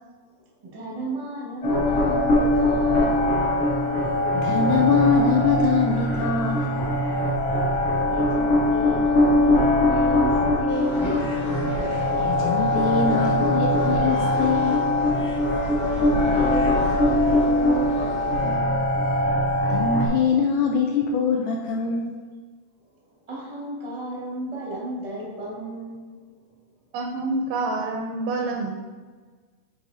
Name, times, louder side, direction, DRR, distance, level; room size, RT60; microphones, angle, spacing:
voice 1, 0.3-3.3 8.1-11.2 15.8-18.9 23.2-26.1, right 1 dB, 60° right, -5 dB, 0.3 m, -34 dB
sound 1, 1.6-20.1, left 1 dB, 70° left, 1.3 m, -22 dB
voice 2, 4.3-6.8 12.1-14.8 19.7-22.2, left 5 dB, 85° left, 1 dB, 1.7 m, -23 dB
sound 2, 10.7-18.6, equal, 25° left, 0.6 m, -38 dB
voice 3, 26.9-28.7, right 3 dB, 85° right, 1 dB, 2.2 m, -27 dB
9.1 x 4.0 x 2.7 m, 1.4 s
omnidirectional pair, 3.8 m